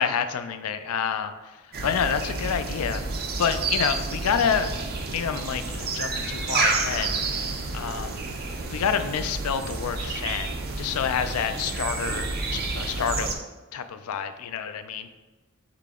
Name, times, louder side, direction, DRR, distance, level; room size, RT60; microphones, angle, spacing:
voice 1, 0.0-1.3 1.8-4.8 5.1-7.1 7.7-8.1 8.7-10.5 10.8-13.3 13.7-15.1, left 7 dB, 90° left, 10 dB, 0.4 m, -28 dB
sound 1, 1.7-13.3, right 3 dB, 45° right, 0.5 m, -30 dB
3.9 x 3.7 x 3.5 m, 1.2 s
head